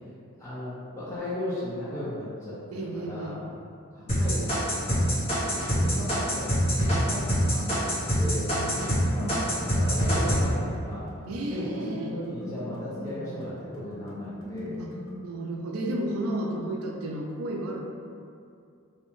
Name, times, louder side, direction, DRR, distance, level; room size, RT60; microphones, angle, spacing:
voice 1, 0.4-3.4 3.9-11.0 11.5-14.8, left 1 dB, 15° left, -11 dB, 0.5 m, -36 dB
voice 2, 2.7-3.4 8.5-9.5 11.3-12.1 14.8-14.9 15.2-17.8, right 1 dB, 90° right, 0 dB, 0.4 m, -33 dB
sound 1, 4.1-9.0 9.3-10.4, equal, 30° left, 1.0 m, -25 dB
sound 2, 7.2-15.2, left 1 dB, 85° left, 0.7 m, -40 dB
2.7 x 2.2 x 3.0 m, 2.4 s
head